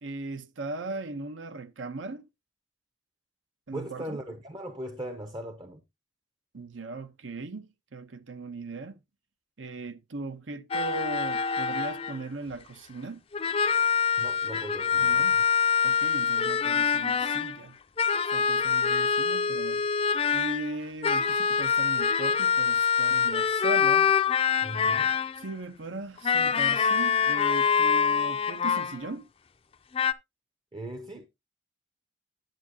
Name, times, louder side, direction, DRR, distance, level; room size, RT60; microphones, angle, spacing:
voice 1, 0.0-2.3 3.7-4.2 6.5-9.0 9.6-13.2 14.9-15.4 15.8-17.7 18.3-19.8 20.3-24.1 25.4-29.3, right 3 dB, 80° right, 1.0 m, -38 dB
voice 2, 3.7-5.8 14.2-15.4 24.6-25.1 30.7-31.3, right 1 dB, 25° right, 0.6 m, -39 dB
sound 1, 10.7-12.2 13.3-17.6 18.0-20.7 21.0-25.4 26.2-29.1 29.9-30.1, left 6 dB, 30° left, 0.4 m, -25 dB
10.5 x 7.4 x 2.9 m
head